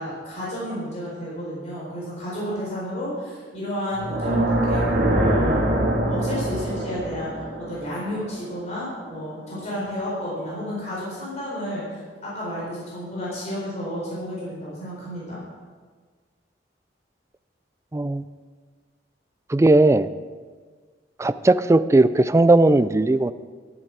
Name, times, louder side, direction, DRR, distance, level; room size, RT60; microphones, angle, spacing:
voice 1, 0.0-4.4 4.7-4.8 5.1-5.6 6.1-15.4, equal, 40° left, -7 dB, 4.2 m, -31 dB
sound 1, 3.9-9.0, right 1 dB, 50° right, 2.6 m, -24 dB
voice 2, 17.9-18.2 19.5-20.1 21.2-23.3, right 2 dB, 15° right, 13 dB, 0.3 m, -17 dB
12.0 x 11.0 x 4.8 m, 1.5 s
head